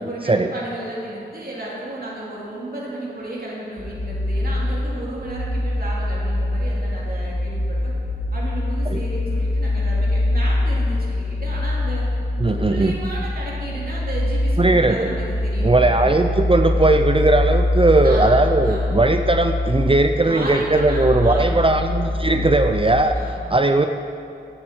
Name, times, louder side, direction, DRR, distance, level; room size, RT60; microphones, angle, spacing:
voice 1, 0.0-7.9 8.3-12.0 12.4-16.1 18.0-19.0 20.2-21.7 23.1-23.6, right 1 dB, 55° right, -6 dB, 2.9 m, -33 dB
sound 1, 3.8-23.0, left 1 dB, 80° left, 1.5 m, -23 dB
voice 2, 12.4-13.0 14.6-15.1 15.6-23.1 23.5-23.9, right 2 dB, 30° right, 6 dB, 0.6 m, -18 dB
14.5 x 9.8 x 4.5 m, 2.5 s
wide cardioid pair, 45°, 18 cm